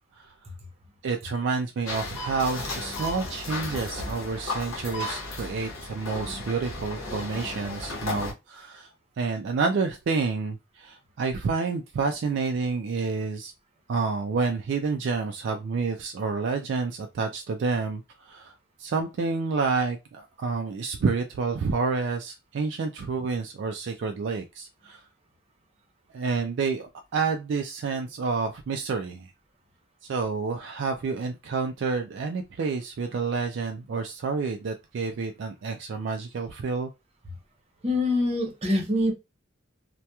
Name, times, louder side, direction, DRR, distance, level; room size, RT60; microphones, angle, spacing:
voice 1, 1.0-8.9 9.2-13.5 13.9-18.5 18.8-25.0 26.1-29.3 30.0-36.9, right 4 dB, 60° right, 0.3 m, -29 dB
sound 1, 1.9-8.3, left 2 dB, 85° left, 0.8 m, -34 dB
voice 2, 37.8-39.1, left 1 dB, 30° right, 0.7 m, -24 dB
2.8 x 2.1 x 2.2 m
head